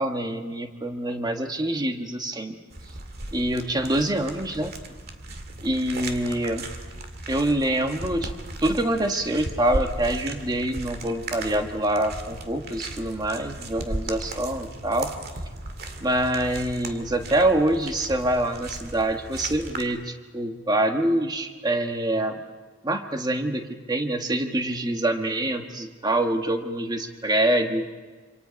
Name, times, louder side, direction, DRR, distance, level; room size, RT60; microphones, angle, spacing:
voice 1, 0.0-2.6 3.3-4.7 5.6-6.7 7.3-8.3 8.6-15.1 16.0-22.4 22.8-27.8, right 1 dB, 20° right, 5 dB, 1.5 m, -25 dB
sound 1, 2.7-19.8, right 2 dB, 55° right, 2.1 m, -36 dB
27.5 x 26.5 x 5.3 m, 1.4 s
head